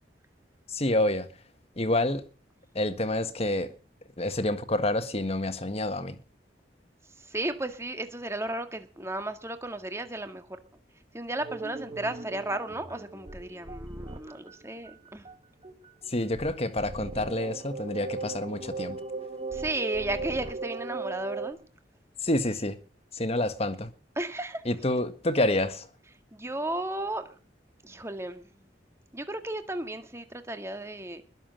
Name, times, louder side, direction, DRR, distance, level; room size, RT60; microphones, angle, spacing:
voice 1, 0.7-1.3 1.7-2.2 2.7-3.7 4.2-6.2 16.1-19.0 22.2-22.8 23.1-23.9 24.6-25.9, left 1 dB, 35° left, 1.7 m, -28 dB
voice 2, 7.2-10.5 11.1-15.2 19.5-21.6 24.2-24.6 26.3-27.4 27.8-28.5 29.1-31.4, right 1 dB, 15° right, 1.9 m, -34 dB
sound 1, 11.4-14.5 14.9-15.3 15.6-21.5, right 3 dB, 35° right, 2.0 m, -38 dB
21.0 x 7.6 x 7.7 m
head